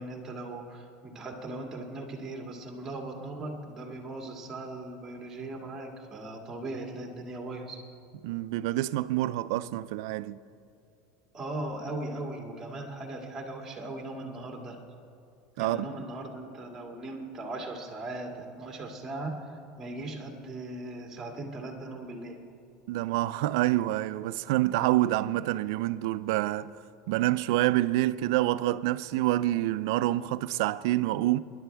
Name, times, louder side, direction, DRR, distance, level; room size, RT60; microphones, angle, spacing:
voice 1, 0.0-7.8 11.3-14.8 15.6-19.4 19.8-22.4, right 2 dB, 20° right, 2.1 m, -38 dB
voice 2, 8.2-10.4 15.6-15.9 22.9-26.7 27.1-31.4, right 16 dB, 75° right, 0.4 m, -27 dB
29.5 x 11.0 x 3.4 m
supercardioid pair, 145°, 2 cm